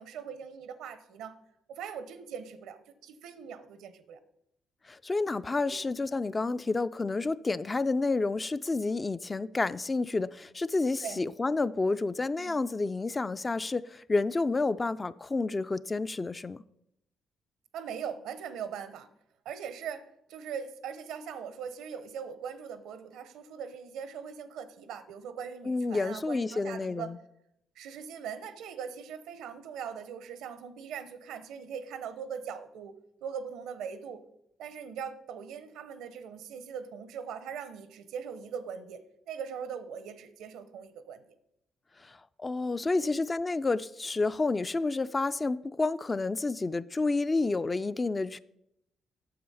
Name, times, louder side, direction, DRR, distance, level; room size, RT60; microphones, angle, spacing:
voice 1, 0.0-1.4 1.7-4.2 5.6-5.8 11.0-11.2 12.4-12.6 17.7-19.1 19.4-27.1 27.8-32.9 33.2-34.2 34.6-41.2 43.0-43.3, right 7 dB, 90° right, 0.8 m, -41 dB
voice 2, 4.9-16.6 25.6-27.2 42.0-48.4, left 3 dB, 25° left, 0.3 m, -30 dB
8.6 x 7.0 x 5.5 m
cardioid pair, 90°, 0 cm